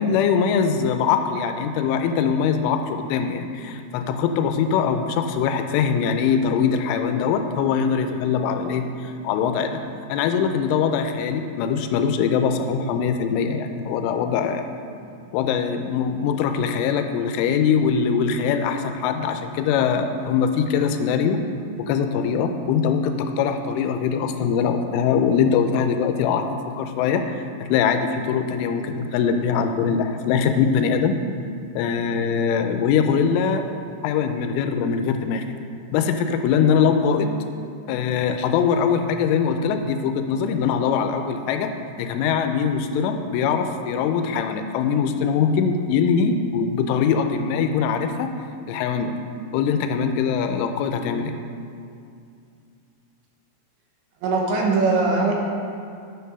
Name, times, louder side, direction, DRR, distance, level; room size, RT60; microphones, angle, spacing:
voice 1, 0.0-9.8 10.1-14.7 15.3-21.4 21.8-31.2 31.8-33.6 34.0-35.5 35.9-37.4 37.9-41.7 42.0-48.3 48.7-49.2 49.5-51.3, left 6 dB, 85° left, 7 dB, 3.1 m, -22 dB
voice 2, 54.2-55.3, right 3 dB, 75° right, -1 dB, 3.3 m, -21 dB
9.4 x 6.6 x 5.4 m, 2.5 s
omnidirectional pair, 5.6 m